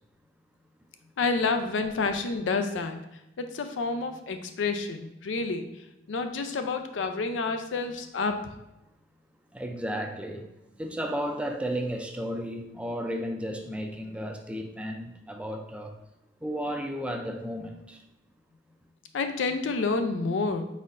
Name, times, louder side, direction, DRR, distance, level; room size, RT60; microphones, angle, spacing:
voice 1, 1.2-3.0 3.4-5.7 6.1-8.4 19.1-20.6, left 4 dB, 80° left, 7 dB, 0.4 m, -29 dB
voice 2, 9.5-15.9 16.4-18.0, equal, 5° right, 4 dB, 0.4 m, -33 dB
4.1 x 4.1 x 2.5 m, 0.90 s
head